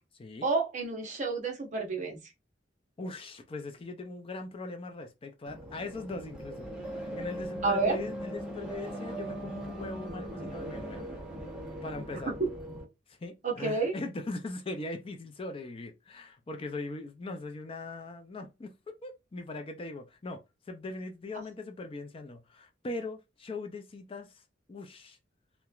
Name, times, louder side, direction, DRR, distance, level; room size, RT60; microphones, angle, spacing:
voice 1, 0.4-2.2 7.6-8.0 12.3-12.4 13.4-13.9, right 3 dB, 40° right, 0.8 m, -29 dB
voice 2, 3.0-11.0 11.8-12.3 13.1-18.7 19.0-20.4 20.7-24.4 24.7-25.2, left 2 dB, 30° left, 0.4 m, -40 dB
sound 1, 5.5-12.8, right 1 dB, 5° right, 0.7 m, -39 dB
2.9 x 2.2 x 2.3 m
head